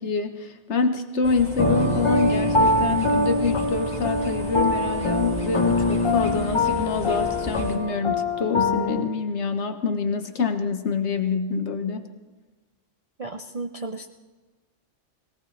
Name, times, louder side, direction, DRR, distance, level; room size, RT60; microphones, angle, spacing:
voice 1, 0.0-12.1, left 5 dB, 60° left, 7 dB, 1.3 m, -26 dB
sound 1, 1.2-7.8, right 1 dB, 5° left, 2.4 m, -36 dB
sound 2, 1.6-9.0, left 2 dB, 25° left, 0.9 m, -23 dB
voice 2, 13.2-14.1, right 3 dB, 45° right, 4 dB, 0.5 m, -34 dB
21.0 x 17.5 x 3.2 m, 1.3 s
omnidirectional pair, 1.3 m